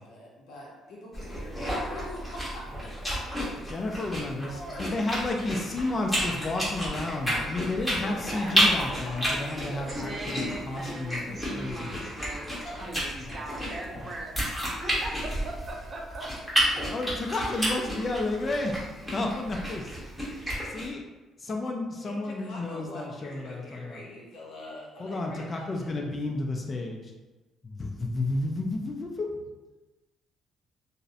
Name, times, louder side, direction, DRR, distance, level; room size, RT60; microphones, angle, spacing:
voice 1, 0.0-5.1 7.9-10.2 12.6-12.8 22.0-26.1, left 1 dB, 70° left, -3 dB, 0.7 m, -44 dB
sound 1, 1.1-20.9, equal, ahead, 0.9 m, -31 dB
voice 2, 3.6-12.1 13.2-13.4 16.9-19.9 20.6-21.0 21.4-24.0 25.0-27.1 27.6-29.4, left 2 dB, 35° left, 1 dB, 0.4 m, -32 dB
voice 3, 8.0-8.6 9.9-16.3, right 2 dB, 40° right, 0 dB, 0.5 m, -40 dB
2.5 x 2.0 x 2.5 m, 1.1 s
cardioid pair, 90°, 0 cm